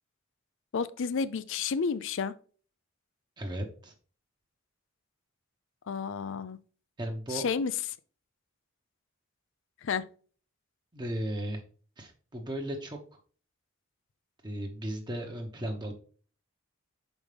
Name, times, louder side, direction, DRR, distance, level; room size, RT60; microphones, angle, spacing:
voice 1, 0.7-2.3 5.9-6.6 7.3-7.7 9.8-10.0, left 5 dB, 65° left, 0.4 m, -31 dB
voice 2, 3.4-3.9 7.0-7.5 10.9-11.6 12.0-13.0 14.4-15.9, right 1 dB, 20° right, 0.9 m, -35 dB
6.3 x 5.3 x 3.3 m
head